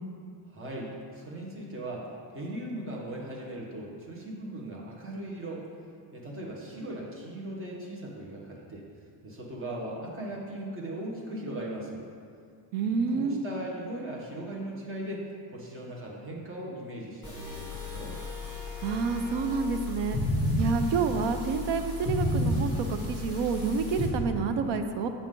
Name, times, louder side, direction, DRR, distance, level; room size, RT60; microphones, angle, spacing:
voice 1, 0.5-2.1 2.3-5.7 6.1-8.8 9.2-12.0 12.9-18.2, right 1 dB, 30° right, -2 dB, 1.3 m, -38 dB
voice 2, 12.7-13.4 18.8-20.2 20.6-25.1, right 5 dB, 75° right, 8 dB, 0.7 m, -28 dB
sound 1, 17.2-24.1, left 1 dB, 10° right, 1.7 m, -32 dB
7.1 x 7.0 x 3.8 m, 2.3 s
cardioid pair, 145°, 43 cm